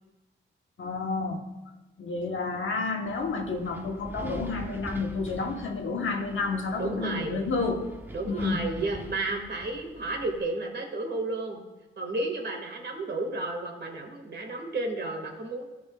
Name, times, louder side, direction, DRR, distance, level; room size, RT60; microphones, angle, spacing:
voice 1, 0.8-1.4 2.0-7.9 8.2-8.7, left 3 dB, 70° left, 3 dB, 1.1 m, -30 dB
Wind, 3.1-10.4, right 1 dB, 10° right, 0.8 m, -44 dB
voice 2, 6.8-7.4 8.1-11.6 12.0-15.6, right 2 dB, 55° right, 2 dB, 1.7 m, -32 dB
14.0 x 6.2 x 2.3 m, 1.1 s
wide cardioid pair, 95°, 21 cm